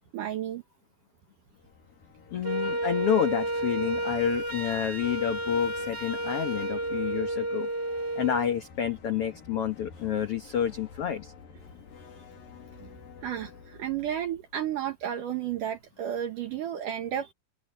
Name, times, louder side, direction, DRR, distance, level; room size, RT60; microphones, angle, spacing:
voice 1, 0.1-0.6 13.2-17.3, right 10 dB, 65° right, 2.6 m, -32 dB
sound 1, 1.5-15.5, left 5 dB, 70° left, 4.7 m, -50 dB
voice 2, 2.3-7.7 8.1-11.3, left 9 dB, 90° left, 1.2 m, -29 dB
Wind instrument woodwind instrument, 2.4-8.5, right 1 dB, 20° right, 2.7 m, -31 dB
open air
omnidirectional pair, 4.3 m